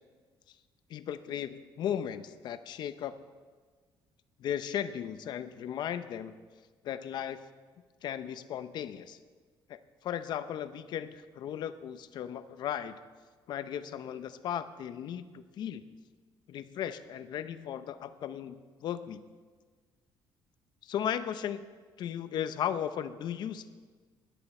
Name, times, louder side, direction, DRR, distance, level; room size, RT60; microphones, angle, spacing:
voice 1, 0.9-3.2 4.4-6.3 6.8-7.4 8.0-9.2 9.7-12.9 13.5-15.8 16.5-19.2 20.8-21.7 22.0-23.7, left 9 dB, 55° left, 12 dB, 0.6 m, -36 dB
17.5 x 11.0 x 4.3 m, 1.5 s
cardioid pair, 170°, 9 cm